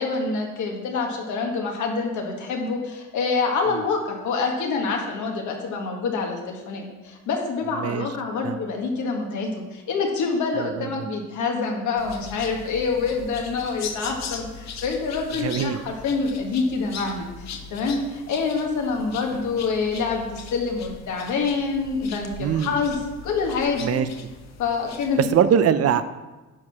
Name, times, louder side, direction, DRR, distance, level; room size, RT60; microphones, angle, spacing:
voice 1, 0.0-23.0 23.2-23.8 24.6-25.2, left 4 dB, 75° left, 1 dB, 1.8 m, -26 dB
voice 2, 7.8-8.1 8.4-8.6 10.5-11.1 15.4-15.8 22.4-22.8 23.8-24.1 25.2-26.1, right 8 dB, 55° right, 12 dB, 0.7 m, -22 dB
sound 1, 12.0-25.4, left 6 dB, 60° left, 1.0 m, -40 dB
10.0 x 4.8 x 6.1 m, 1.2 s
cardioid pair, 90°, 30 cm